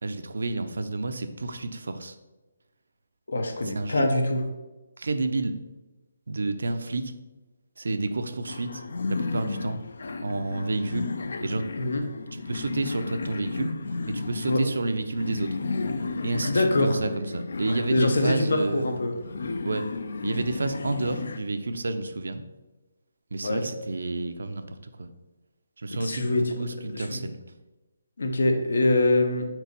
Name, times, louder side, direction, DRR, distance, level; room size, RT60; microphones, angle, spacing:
voice 1, 0.0-2.2 3.6-4.1 5.0-5.6 6.3-7.1 7.8-8.8 9.1-9.8 10.2-11.1 11.4-11.7 12.5-13.7 14.1-15.6 16.2-18.9 19.6-19.9 20.2-22.4 23.3-25.1 25.8-27.4, right 2 dB, 80° right, 8 dB, 0.6 m, -30 dB
voice 2, 3.3-4.4 11.8-12.0 14.5-14.6 16.5-17.0 17.9-19.1 23.4-23.6 26.0-26.6 26.9-27.2 28.2-29.5, left 2 dB, 75° left, 4 dB, 1.1 m, -24 dB
sound 1, 8.5-21.4, left 3 dB, 60° left, 0.5 m, -34 dB
4.6 x 4.0 x 5.2 m, 1.1 s
hypercardioid pair, 175°, 0 cm